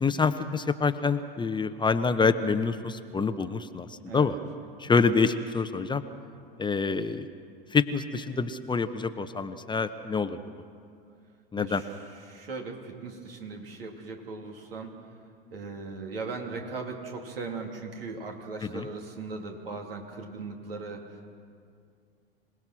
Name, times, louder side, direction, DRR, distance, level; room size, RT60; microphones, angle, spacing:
voice 1, 0.0-4.4 4.8-6.0 6.6-7.3 7.7-10.4 11.5-11.8 18.7-18.9, left 4 dB, 15° left, 10 dB, 0.9 m, -26 dB
voice 2, 11.5-12.0 12.3-15.0 15.5-21.1, right 4 dB, 80° right, 1 dB, 3.1 m, -38 dB
26.5 x 18.5 x 6.2 m, 2.3 s
hypercardioid pair, 85°, 29 cm